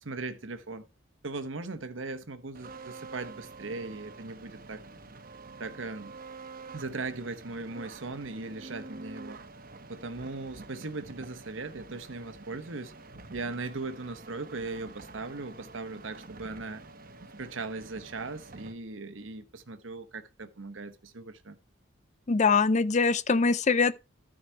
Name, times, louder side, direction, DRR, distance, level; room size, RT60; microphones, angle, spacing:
voice 1, 0.0-0.9 1.2-4.8 5.6-6.1 6.7-9.4 9.9-12.9 13.3-16.8 17.4-21.6, right 3 dB, 75° right, 1.1 m, -38 dB
sound 1, 2.5-18.7, right 3 dB, 45° right, 1.1 m, -47 dB
voice 2, 22.3-23.9, left 4 dB, 35° left, 0.5 m, -23 dB
13.0 x 5.0 x 4.6 m
head